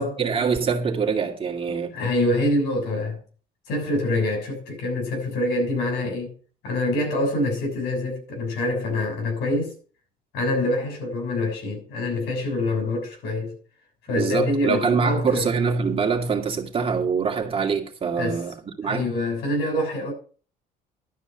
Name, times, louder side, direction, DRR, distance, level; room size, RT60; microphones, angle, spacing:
voice 1, 0.0-1.9 14.1-19.1, right 5 dB, 35° right, 2.3 m, -24 dB
voice 2, 1.9-3.2 3.7-6.3 6.6-9.7 10.3-13.5 14.1-15.5 18.2-18.4 18.8-20.1, left 1 dB, 85° left, 6.7 m, -25 dB
12.0 x 5.2 x 8.0 m
cardioid pair, 110°, 17 cm